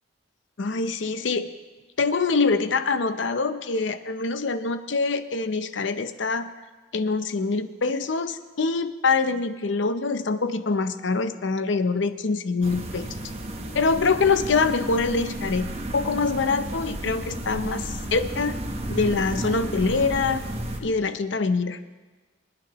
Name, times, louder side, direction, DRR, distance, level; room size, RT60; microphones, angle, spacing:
voice 1, 0.6-1.5 2.0-6.5 6.9-13.2 13.7-18.5 18.9-20.4 20.8-21.8, left 4 dB, 70° left, 10 dB, 0.7 m, -24 dB
sound 1, 12.6-20.8, right 1 dB, 35° right, 1.1 m, -33 dB
27.0 x 9.6 x 3.0 m, 1.3 s
head